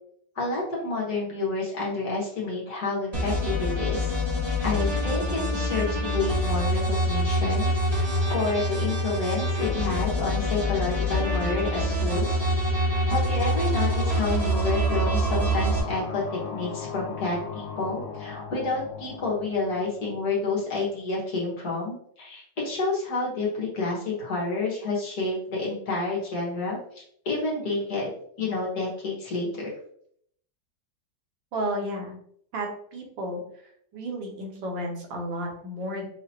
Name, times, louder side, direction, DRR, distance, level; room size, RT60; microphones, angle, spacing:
voice 1, 0.4-4.1 4.6-8.0 8.3-12.3 13.1-28.1 28.4-29.7, left 3 dB, 60° left, -5 dB, 1.9 m, -29 dB
sound 1, 3.1-15.8, equal, 20° right, 1.9 m, -25 dB
Deep Pass By, 13.0-20.4, left 5 dB, 85° left, 1.4 m, -38 dB
voice 2, 31.5-32.2 32.5-33.4 33.9-36.1, right 1 dB, 85° right, 0 dB, 1.7 m, -32 dB
5.4 x 2.8 x 2.9 m, 0.65 s
omnidirectional pair, 2.0 m